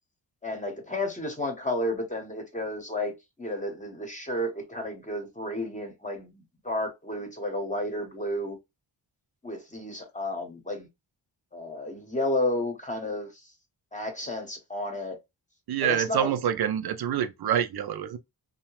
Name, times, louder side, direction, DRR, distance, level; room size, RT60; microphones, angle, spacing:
voice 1, 0.4-3.1 3.4-8.6 9.4-10.9 11.5-13.3 13.9-15.2 15.8-16.4, left 1 dB, 15° left, 0.9 m, -32 dB
voice 2, 15.7-18.2, right 9 dB, 60° right, 0.5 m, -27 dB
2.7 x 2.1 x 2.9 m
wide cardioid pair, 100°, 44 cm